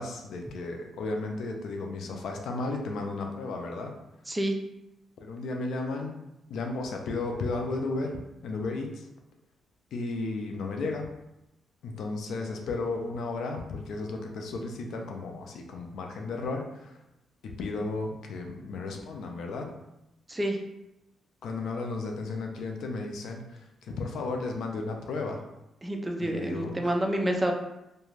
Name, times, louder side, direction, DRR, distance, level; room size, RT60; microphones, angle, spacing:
voice 1, 0.0-3.9 5.2-6.1 6.5-8.1 8.4-9.0 9.9-11.1 11.8-16.9 17.4-19.7 21.4-23.4 24.0-25.4 26.2-26.9, left 3 dB, 80° left, 2 dB, 0.4 m, -34 dB
voice 2, 4.3-4.6 20.3-20.6 25.8-27.5, right 1 dB, 15° right, 3 dB, 0.3 m, -28 dB
2.4 x 2.2 x 3.1 m, 0.90 s
cardioid pair, 115°, 0 cm